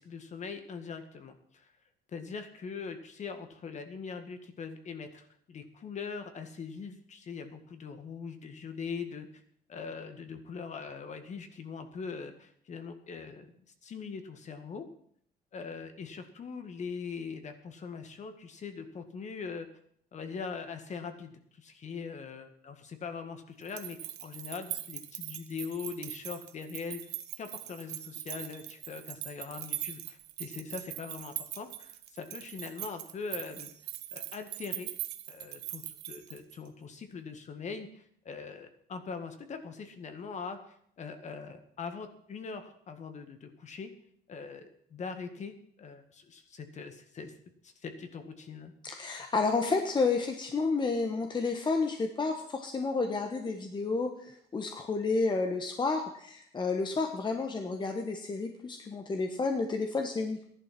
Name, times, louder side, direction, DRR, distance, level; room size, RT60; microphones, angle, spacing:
voice 1, 0.0-1.7 2.1-9.4 9.7-13.5 13.8-14.9 15.5-19.7 20.1-27.0 27.4-33.7 34.1-34.9 35.3-43.9 44.3-47.3 47.6-48.7, left 5 dB, 45° left, 8 dB, 1.9 m, -42 dB
sound 1, 23.6-36.7, right 14 dB, 80° right, 1.2 m, -41 dB
voice 2, 48.8-60.5, left 4 dB, 25° left, 4 dB, 1.4 m, -31 dB
14.0 x 11.0 x 6.0 m, 0.66 s
cardioid pair, 110°, 17 cm